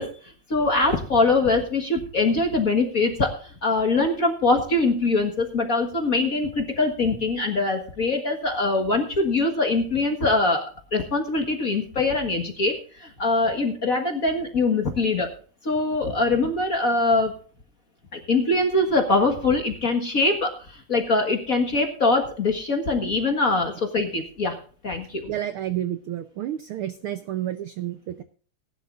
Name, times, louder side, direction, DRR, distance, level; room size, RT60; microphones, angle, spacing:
voice 1, 0.0-10.6 10.9-15.3 15.6-17.3 18.1-24.6 24.8-25.3, left 3 dB, 40° left, 2 dB, 1.4 m, -23 dB
voice 2, 25.3-28.2, right 12 dB, 80° right, 11 dB, 1.2 m, -30 dB
19.5 x 12.0 x 2.5 m, 0.41 s
omnidirectional pair, 3.4 m